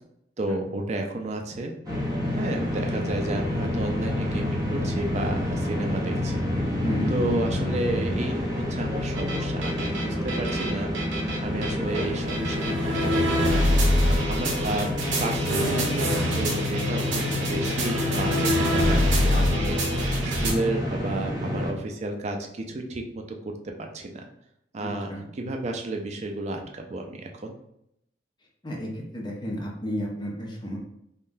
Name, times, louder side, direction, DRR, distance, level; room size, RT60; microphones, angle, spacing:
voice 1, 0.4-1.7 2.4-6.4 7.1-10.9 11.4-13.8 14.2-14.9 15.2-20.0 20.2-23.5 23.8-24.3 24.7-27.5, right 2 dB, 40° right, 3 dB, 0.4 m, -32 dB
sound 1, 1.8-21.7, left 1 dB, 20° right, 0.9 m, -28 dB
sound 2, 9.1-20.5, equal, 90° right, 0.7 m, -25 dB
voice 2, 24.8-25.3 28.6-30.8, equal, 25° left, -2 dB, 0.7 m, -32 dB
3.6 x 2.2 x 2.6 m, 0.78 s
head